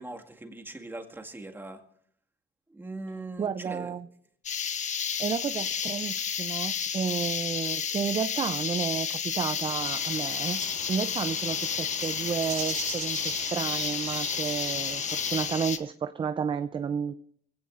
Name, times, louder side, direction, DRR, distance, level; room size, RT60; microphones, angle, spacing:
voice 1, 0.0-1.8 2.7-4.0, right 2 dB, 10° right, 3 dB, 1.9 m, -40 dB
voice 2, 3.4-4.1 5.2-10.6 10.9-17.1, right 6 dB, 30° right, 11 dB, 0.5 m, -31 dB
sound 1, 4.4-15.8, left 7 dB, 45° left, 1.2 m, -31 dB
sound 2, 9.6-15.6, right 8 dB, 85° right, 4.2 m, -41 dB
24.5 x 16.5 x 2.5 m, 0.64 s
cardioid pair, 110°, 17 cm